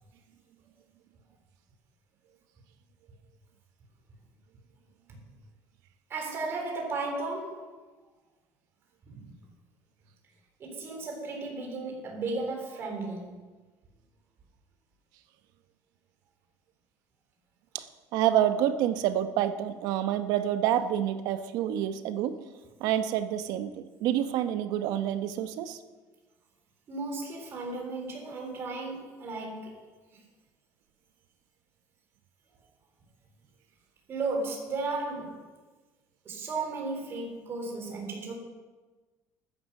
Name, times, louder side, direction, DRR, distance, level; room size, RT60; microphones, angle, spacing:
voice 1, 6.1-7.7 9.0-9.5 10.6-13.4 26.9-29.8 34.1-35.5 36.3-38.3, right 3 dB, 35° right, 1 dB, 3.6 m, -35 dB
voice 2, 17.7-22.4 22.8-25.8, right 11 dB, 70° right, 10 dB, 1.1 m, -28 dB
13.5 x 10.0 x 6.7 m, 1.3 s
cardioid pair, 155°, 7 cm